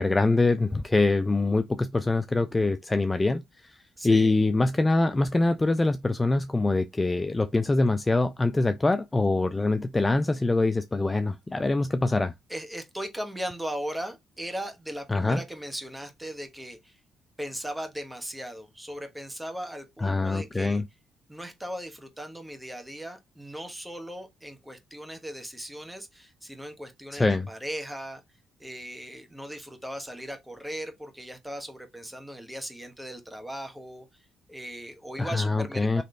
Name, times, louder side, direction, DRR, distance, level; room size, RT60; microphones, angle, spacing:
voice 1, 0.0-3.8 4.0-12.3 15.1-15.4 20.0-20.8 27.1-27.5 35.2-36.0, left 2 dB, 20° left, 0.4 m, -24 dB
voice 2, 4.0-4.3 12.5-17.0 17.4-20.8 21.3-28.2 28.6-34.2 34.5-36.0, equal, 5° right, 1.2 m, -38 dB
4.1 x 3.1 x 3.2 m
cardioid pair, 90°, 0 cm